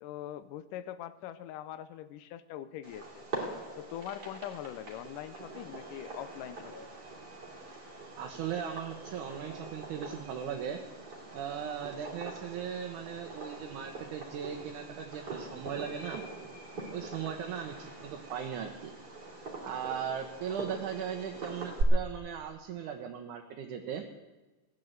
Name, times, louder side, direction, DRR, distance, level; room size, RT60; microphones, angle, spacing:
voice 1, 0.0-3.2 3.8-6.9, left 11 dB, 85° left, 12 dB, 2.3 m, -42 dB
Fireworks, 2.8-21.8, right 2 dB, 35° right, 3.0 m, -43 dB
voice 2, 8.2-10.8 11.3-16.2 16.9-18.9 19.6-24.0, right 8 dB, 75° right, 3 dB, 2.5 m, -38 dB
16.5 x 10.5 x 7.9 m, 1.2 s
omnidirectional pair, 3.7 m